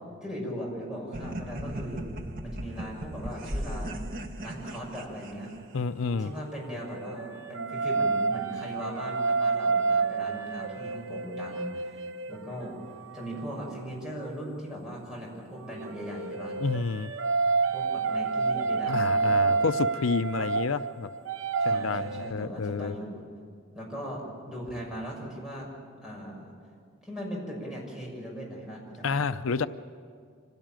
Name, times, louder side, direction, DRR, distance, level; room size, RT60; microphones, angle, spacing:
voice 1, 0.2-2.1 2.4-4.0 4.4-5.5 6.2-12.8 13.1-16.6 17.7-19.7 20.4-20.5 21.6-23.2 23.7-25.7 26.0-26.5 27.0-29.2, equal, 5° right, -3 dB, 6.6 m, -39 dB
sound 1, 1.1-5.9, right 1 dB, 45° right, 1.3 m, -37 dB
voice 2, 5.7-6.3 16.6-17.1 18.9-21.1 21.6-22.9 29.0-29.7, left 4 dB, 80° left, 12 dB, 0.6 m, -29 dB
sound 2, 6.1-14.4 15.5-22.3, right 4 dB, 70° right, 0.8 m, -29 dB
26.0 x 17.5 x 9.1 m, 2.1 s
head